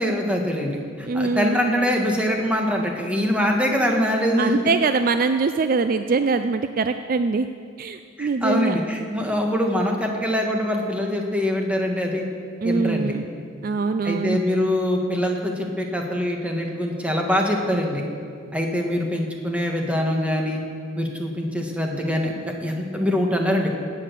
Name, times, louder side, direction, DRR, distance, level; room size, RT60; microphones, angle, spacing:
voice 1, 0.0-4.5 8.2-12.3 12.6-13.1 14.0-18.0 18.5-20.6 20.9-23.7, equal, 5° right, 1 dB, 1.5 m, -23 dB
voice 2, 1.0-1.6 4.4-7.5 7.8-8.8 12.6-13.3 13.6-14.4, right 4 dB, 45° right, 9 dB, 0.4 m, -23 dB
17.0 x 8.6 x 6.7 m, 2.2 s
head